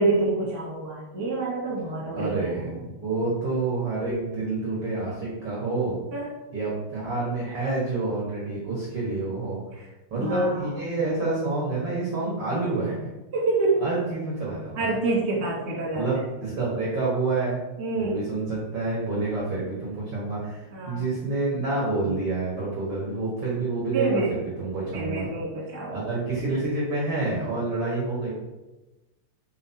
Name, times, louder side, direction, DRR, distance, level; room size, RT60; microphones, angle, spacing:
voice 1, 0.0-2.8 6.1-6.3 9.7-9.9 10.1-10.7 13.3-13.8 14.7-16.1 17.8-18.2 20.7-21.0 23.9-24.3 24.9-26.1, right 3 dB, 30° right, -5 dB, 1.4 m, -27 dB
voice 2, 2.1-6.0 6.5-13.1 13.8-14.9 15.9-17.6 17.9-25.3 25.9-28.3, right 3 dB, 65° right, -6 dB, 1.4 m, -28 dB
7.7 x 4.5 x 4.4 m, 1.1 s
omnidirectional pair, 5.4 m